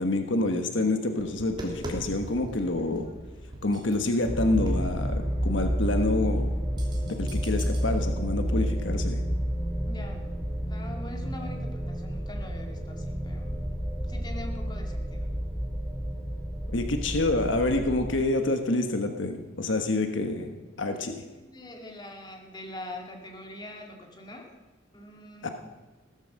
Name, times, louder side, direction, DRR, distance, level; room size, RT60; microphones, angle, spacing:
voice 1, 0.0-3.0 3.6-6.5 7.0-9.2 16.7-20.5 20.8-21.2 25.4-25.5, left 2 dB, 70° left, 6 dB, 1.3 m, -27 dB
Tap, 1.2-7.9, equal, 25° right, 3.2 m, -42 dB
sound 1, 4.2-18.1, equal, 5° right, 6.0 m, -30 dB
voice 2, 9.9-10.3 10.7-13.6 14.1-15.3 20.9-24.5 24.9-25.5, left 1 dB, 20° left, 2 dB, 2.2 m, -43 dB
16.5 x 13.5 x 6.5 m, 1.2 s
head